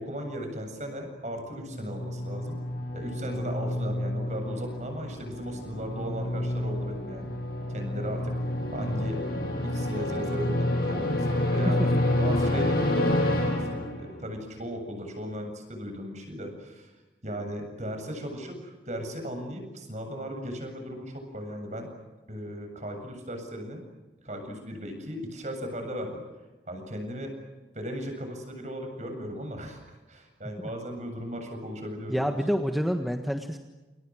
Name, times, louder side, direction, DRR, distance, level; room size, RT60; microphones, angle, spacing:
voice 1, 0.0-2.6 2.9-7.3 7.7-8.4 8.7-9.2 9.6-11.8 12.2-16.9 17.2-21.9 22.3-23.8 24.2-26.2 26.7-27.3 27.7-32.3, equal, 40° right, 5 dB, 7.7 m, -37 dB
sound 1, 1.7-14.3, left 1 dB, 55° left, 7.3 m, -29 dB
voice 2, 32.1-33.6, equal, ahead, 4 dB, 1.5 m, -27 dB
29.5 x 29.0 x 6.4 m, 1.2 s
head